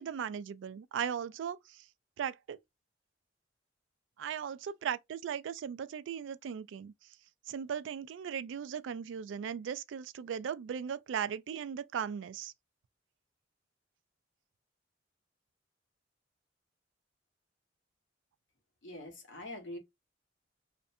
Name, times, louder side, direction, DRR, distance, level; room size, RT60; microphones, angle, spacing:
voice 1, 0.0-1.8 2.2-2.6 4.2-6.9 7.5-12.5, right 8 dB, 80° right, 0.3 m, -37 dB
voice 2, 18.8-19.8, left 1 dB, 80° left, 1.0 m, -44 dB
2.5 x 2.1 x 2.6 m
head